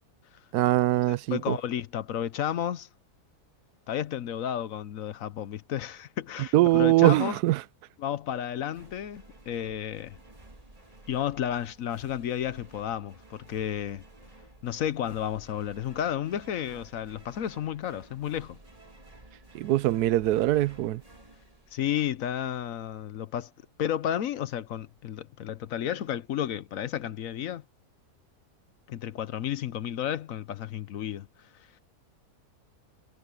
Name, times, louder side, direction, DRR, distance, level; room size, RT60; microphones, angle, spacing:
voice 1, 0.5-1.6 6.5-7.6 19.5-21.0, right 16 dB, 90° right, 1.1 m, -22 dB
voice 2, 1.3-2.9 3.9-7.4 8.0-10.2 11.1-14.0 14.6-18.6 21.7-23.5 23.8-27.6 28.9-31.3, left 10 dB, 65° left, 1.1 m, -32 dB
sound 1, 8.7-22.4, right 2 dB, 25° right, 2.2 m, -53 dB
omnidirectional pair, 1.6 m